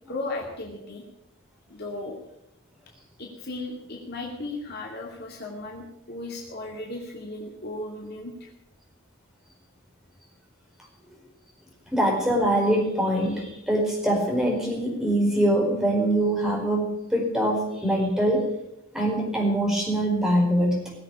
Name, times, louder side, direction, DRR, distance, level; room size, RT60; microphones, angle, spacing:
voice 1, 0.1-1.0 1.7-2.2 3.2-8.5, left 2 dB, 50° left, -1 dB, 2.5 m, -36 dB
voice 2, 11.9-18.4 18.9-20.8, right 1 dB, ahead, -2 dB, 4.8 m, -23 dB
20.0 x 7.7 x 8.6 m, 0.85 s
head